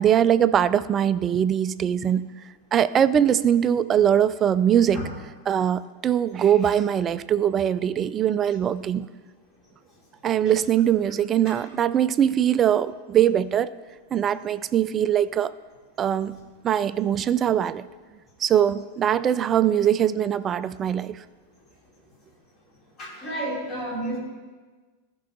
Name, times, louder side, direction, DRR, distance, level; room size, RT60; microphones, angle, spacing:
voice 1, 0.0-2.3 2.7-5.0 5.5-9.1 10.2-13.7 14.1-15.5 16.0-17.9 18.4-21.2, right 9 dB, 25° right, 16 dB, 0.3 m, -22 dB
voice 2, 23.0-24.2, right 1 dB, 30° left, -4 dB, 3.2 m, -31 dB
14.0 x 5.4 x 3.9 m, 1.3 s
figure-of-eight pair, 90°, 0 cm